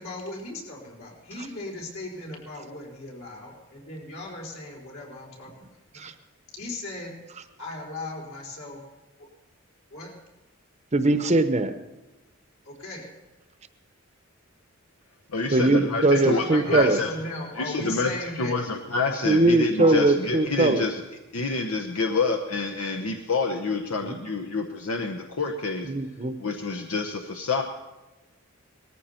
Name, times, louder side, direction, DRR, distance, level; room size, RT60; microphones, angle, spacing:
voice 1, 0.0-6.1 6.5-7.1 7.6-8.8 9.9-10.1 12.6-13.0 16.0-18.5 19.8-19.9, left 2 dB, 70° left, -2 dB, 4.6 m, -37 dB
voice 2, 10.9-11.7 15.5-17.0 19.2-20.8 24.0-24.2 25.9-26.3, right 2 dB, 30° right, 9 dB, 0.8 m, -21 dB
voice 3, 15.3-17.1 17.6-21.0 21.3-25.9 26.4-27.6, left 3 dB, 85° left, 4 dB, 1.0 m, -28 dB
19.0 x 14.0 x 4.4 m, 1.1 s
head